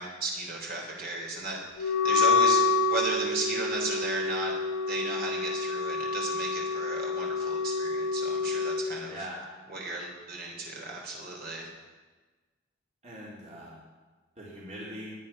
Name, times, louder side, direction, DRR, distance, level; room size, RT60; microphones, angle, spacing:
voice 1, 0.0-4.5 4.9-9.3 9.7-11.7, right 2 dB, 55° right, -1 dB, 3.9 m, -35 dB
Wind instrument woodwind instrument, 1.8-8.8, left 4 dB, 85° left, 1.0 m, -27 dB
voice 2, 9.0-9.4 13.0-13.8 14.4-15.1, equal, 40° right, -6 dB, 3.3 m, -41 dB
22.0 x 9.1 x 5.7 m, 1.3 s
head